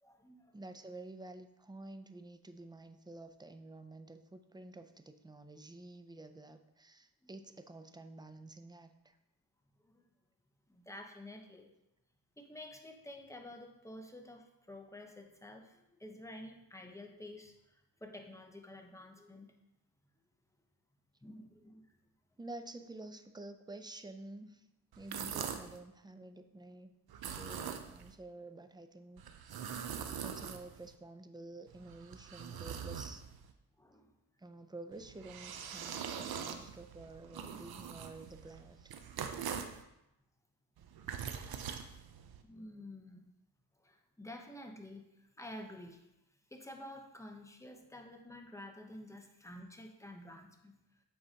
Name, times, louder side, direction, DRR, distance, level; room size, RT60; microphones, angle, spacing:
voice 1, 0.0-0.6 7.2-7.3 9.8-10.0 10.7-11.7 12.4-19.5 21.2-21.9 33.8-34.1 42.4-43.3 43.8-46.1 46.5-50.7, left 1 dB, 5° left, 3 dB, 0.8 m, -50 dB
voice 2, 0.5-9.2 22.4-24.7 25.0-26.9 27.3-29.7 30.2-33.3 34.4-39.0, right 2 dB, 10° right, 8 dB, 0.4 m, -50 dB
sound 1, 24.9-25.8 27.1-28.1 29.2-30.9 31.7-33.5 34.9-39.8 40.8-42.4, right 7 dB, 65° right, 0.7 m, -43 dB
7.8 x 4.9 x 2.8 m, 0.88 s
cardioid pair, 80°, 40 cm